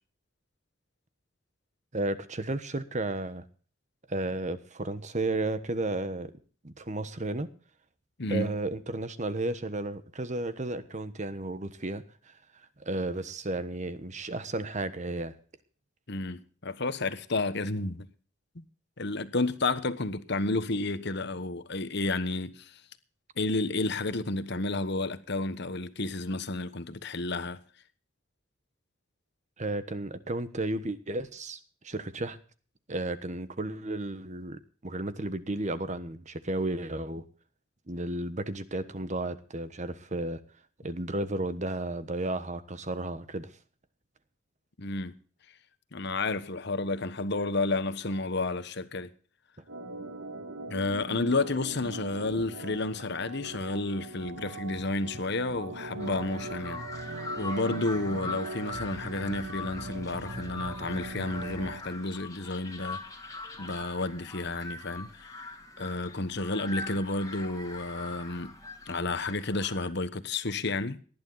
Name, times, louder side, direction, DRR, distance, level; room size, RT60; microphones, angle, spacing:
voice 1, 1.9-3.4 4.1-6.3 6.6-7.5 8.3-12.3 12.8-15.3 29.6-31.6 31.8-32.4 32.9-37.2 37.9-40.4 40.8-43.5, right 2 dB, 40° right, 1.3 m, -33 dB
voice 2, 8.2-8.5 16.1-18.1 18.5-18.6 19.0-22.8 23.4-27.6 44.8-45.1 45.9-49.1 50.7-56.8 57.4-63.0 63.6-65.4 65.8-68.5 68.9-71.0, left 2 dB, 60° left, 1.3 m, -31 dB
Organ, 49.7-61.8, right 3 dB, 85° right, 1.8 m, -41 dB
sound 1, 56.0-69.9, left 3 dB, 20° left, 2.3 m, -42 dB
19.0 x 11.5 x 4.0 m
head